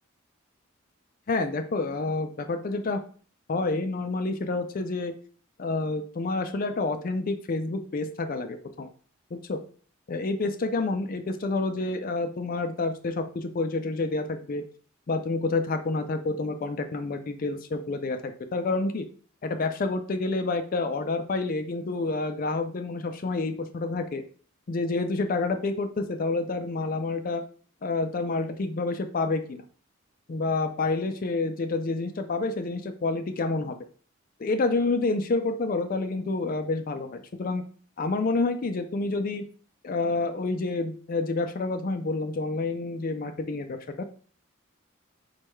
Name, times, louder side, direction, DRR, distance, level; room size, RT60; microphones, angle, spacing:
voice 1, 1.3-3.0 3.5-5.1 5.6-8.9 9.3-9.6 10.1-14.6 15.1-19.1 19.4-24.2 24.7-27.4 27.8-29.6 30.3-33.8 34.4-37.6 38.0-39.4 39.8-44.0, left 3 dB, 40° left, 8 dB, 0.4 m, -28 dB
4.5 x 2.3 x 4.4 m, 0.43 s
head